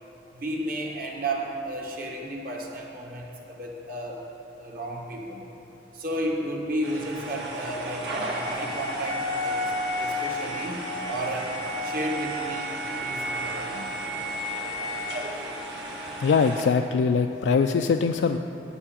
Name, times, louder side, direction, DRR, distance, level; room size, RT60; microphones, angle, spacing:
voice 1, 0.3-4.3 4.6-5.4 5.9-9.6 10.0-12.7 13.0-13.9, right 1 dB, 50° right, 0 dB, 1.4 m, -33 dB
sound 1, 6.8-16.6, equal, 70° right, 1.5 m, -32 dB
voice 2, 16.2-18.4, left 5 dB, 75° left, 5 dB, 0.3 m, -22 dB
8.5 x 7.1 x 8.7 m, 2.9 s
head